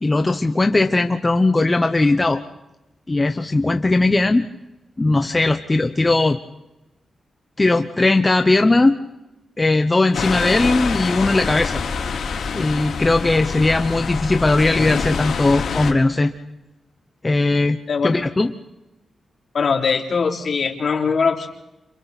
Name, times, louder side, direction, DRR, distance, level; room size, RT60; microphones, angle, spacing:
voice 1, 0.0-2.4 3.1-4.4 5.0-6.4 7.6-9.0 9.6-11.8 12.5-16.3 17.2-18.5, left 2 dB, 20° left, 7 dB, 0.9 m, -18 dB
sound 1, 10.1-15.9, left 5 dB, 85° left, 3.8 m, -26 dB
voice 2, 19.5-21.5, left 5 dB, 55° left, 1 dB, 3.3 m, -21 dB
30.0 x 27.5 x 4.2 m, 0.96 s
wide cardioid pair, 110°, 0 cm